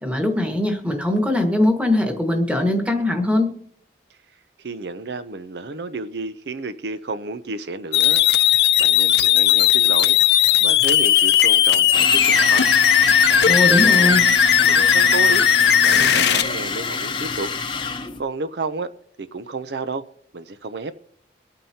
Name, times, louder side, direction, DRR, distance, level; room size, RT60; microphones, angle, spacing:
voice 1, 0.0-3.5 13.5-14.2, left 1 dB, 5° right, 4 dB, 1.5 m, -21 dB
voice 2, 4.6-10.2 10.6-12.6 13.3-14.2 14.6-17.9 18.2-18.9 19.2-20.1 20.3-20.9, right 3 dB, 70° right, 12 dB, 0.6 m, -31 dB
sound 1, 7.9-16.4, left 9 dB, 70° left, 0.7 m, -16 dB
sound 2, 11.9-18.2, left 4 dB, 25° left, 0.8 m, -26 dB
23.5 x 8.9 x 2.8 m, 0.69 s
head